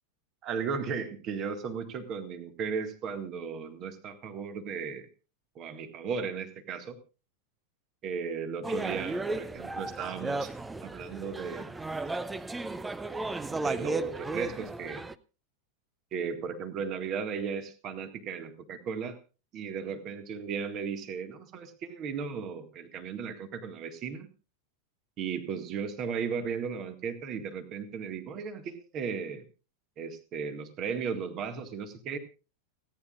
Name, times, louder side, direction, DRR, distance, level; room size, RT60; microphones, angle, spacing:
voice 1, 0.4-5.1 5.6-7.0 8.0-10.5 10.8-11.7 13.6-15.0 16.1-19.2 19.5-24.3 25.2-29.4 30.0-32.2, right 6 dB, 35° right, 9 dB, 1.9 m, -35 dB
sound 1, 8.6-15.1, right 2 dB, 10° right, 0.6 m, -35 dB
30.0 x 10.0 x 2.5 m, 0.34 s
figure-of-eight pair, 90°, 0 cm